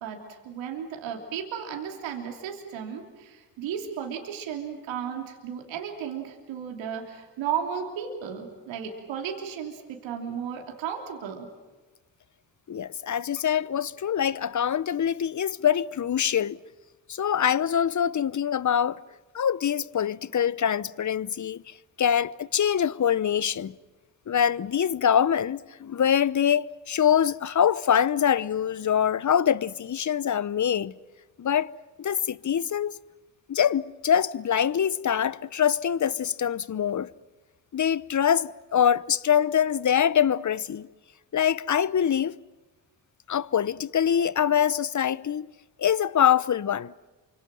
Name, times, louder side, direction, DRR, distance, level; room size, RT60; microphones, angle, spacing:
voice 1, 0.0-11.5, right 8 dB, 85° right, 3.2 m, -34 dB
voice 2, 12.7-16.6 17.1-19.0 19.3-23.7 24.3-31.0 31.4-31.7 32.0-32.9 33.5-37.1 37.7-40.9 41.3-42.3 43.3-45.5 45.8-46.9, left 9 dB, 40° left, 0.9 m, -24 dB
28.5 x 25.0 x 7.7 m
supercardioid pair, 50°, 45 cm